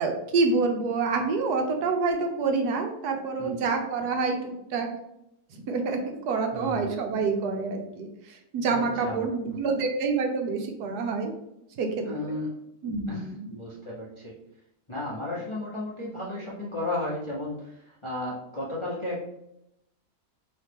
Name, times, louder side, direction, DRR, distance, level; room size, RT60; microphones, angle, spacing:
voice 1, 0.0-4.9 5.7-8.1 8.5-11.3 11.8-12.0 12.8-13.5, right 4 dB, 75° right, 4 dB, 1.2 m, -27 dB
voice 2, 3.4-3.7 6.5-7.0 8.7-9.3 12.0-12.5 13.1-14.4 14.9-19.2, left 2 dB, 30° left, -6 dB, 0.6 m, -34 dB
4.2 x 3.1 x 3.4 m, 0.82 s
omnidirectional pair, 1.8 m